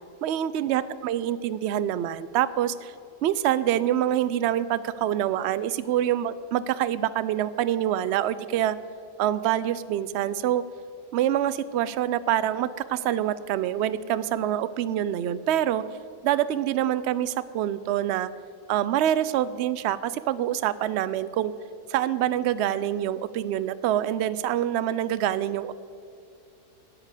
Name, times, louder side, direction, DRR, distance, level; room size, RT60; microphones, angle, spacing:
voice 1, 0.2-2.9 3.2-8.8 9.2-10.6 11.1-15.8 16.2-18.3 18.7-21.5 21.9-25.7, right 11 dB, 70° right, 15 dB, 0.6 m, -26 dB
13.0 x 8.8 x 8.3 m, 2.4 s
omnidirectional pair, 1.6 m